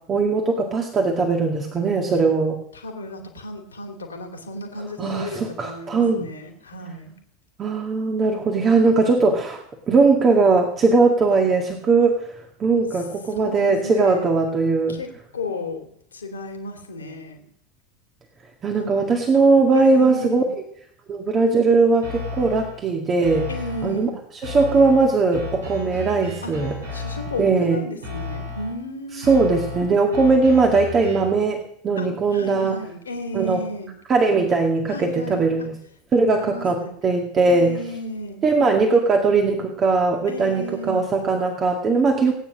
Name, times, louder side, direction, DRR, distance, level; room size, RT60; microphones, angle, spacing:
voice 1, 0.1-2.6 5.0-6.3 7.6-12.2 12.6-15.0 18.6-20.4 21.1-23.5 23.8-24.1 24.4-26.7 27.4-27.8 29.2-32.8 33.3-33.6 34.1-35.7 36.1-37.7 38.4-42.3, right 4 dB, 30° right, 2 dB, 2.1 m, -19 dB
voice 2, 2.7-7.1 13.3-14.3 14.9-15.1 15.3-17.5 18.7-19.0 19.7-20.5 23.5-24.1 26.4-26.5 26.9-29.4 32.0-33.9 34.9-35.7 36.3-36.9 37.5-38.4 40.3-41.1 42.3-42.4, left 1 dB, 75° left, 3 dB, 2.7 m, -34 dB
sound 1, 22.0-22.8 23.2-24.0 24.4-27.6 28.0-28.8 29.2-31.4, left 3 dB, 75° right, 7.0 m, -34 dB
19.0 x 9.5 x 6.4 m, 0.69 s
figure-of-eight pair, 75°, 0 cm